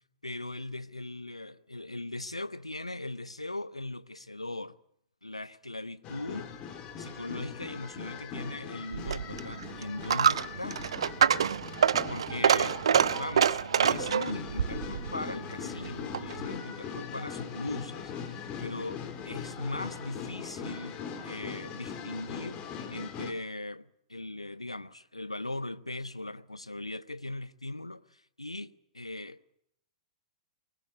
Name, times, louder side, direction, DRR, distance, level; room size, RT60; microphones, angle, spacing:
voice 1, 0.2-4.8 5.2-6.5 7.0-10.8 12.1-12.8 13.1-29.5, left 2 dB, 90° left, 0.9 m, -39 dB
sound 1, 6.0-23.3, left 7 dB, 30° left, 3.4 m, -41 dB
Coin (dropping), 8.9-16.4, right 8 dB, 65° right, 0.9 m, -27 dB
23.5 x 20.0 x 8.4 m
figure-of-eight pair, 105°, 3 cm